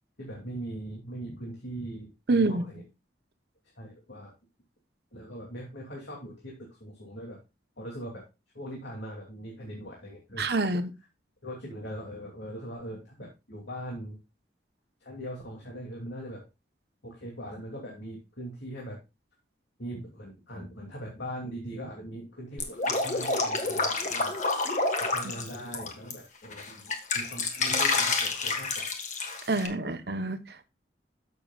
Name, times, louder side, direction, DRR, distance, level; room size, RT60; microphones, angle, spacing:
voice 1, 0.2-2.8 3.8-4.3 5.1-7.4 7.8-8.2 8.5-10.8 11.4-14.2 15.0-16.4 17.0-19.0 19.8-24.3 25.0-28.9 29.8-29.9, equal, 75° left, 2.9 m, -41 dB
voice 2, 2.3-2.6 10.4-10.8 25.2-25.3 29.5-30.7, right 3 dB, 60° right, 1.0 m, -27 dB
Drip, 22.6-26.1 26.5-29.7, left 3 dB, 40° left, 1.6 m, -28 dB
14.0 x 6.8 x 2.4 m
head